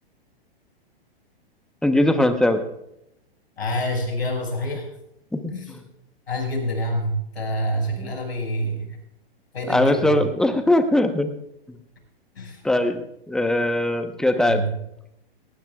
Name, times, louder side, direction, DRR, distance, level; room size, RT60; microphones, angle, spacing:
voice 1, 1.8-2.6 5.3-5.8 8.0-8.1 9.7-11.3 11.7-11.8 12.6-13.0 13.3-14.6, left 1 dB, ahead, 8 dB, 0.9 m, -21 dB
voice 2, 3.6-4.9 5.5-5.7 6.3-9.0 9.5-10.2 12.4-12.6 14.4-14.8, equal, 90° left, 1 dB, 5.7 m, -27 dB
19.0 x 18.5 x 2.4 m, 0.83 s
hypercardioid pair, 125°, 30 cm